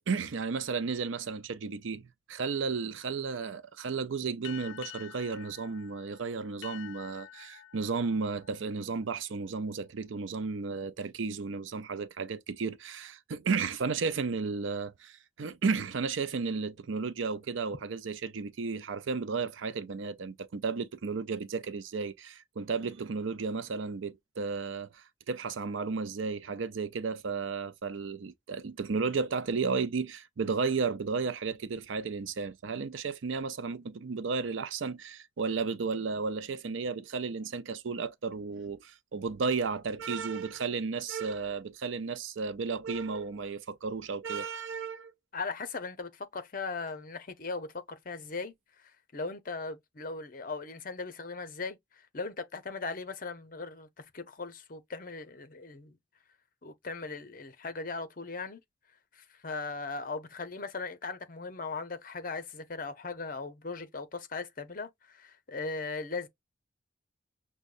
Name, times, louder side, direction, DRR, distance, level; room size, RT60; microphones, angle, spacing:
voice 1, 0.1-45.1, right 4 dB, 90° right, 0.5 m, -33 dB
sound 1, 4.4-9.5, left 12 dB, 75° left, 0.4 m, -49 dB
voice 2, 45.3-48.5 49.1-56.0 56.6-58.6 59.1-66.3, left 4 dB, 45° left, 0.7 m, -38 dB
6.2 x 2.2 x 2.5 m
head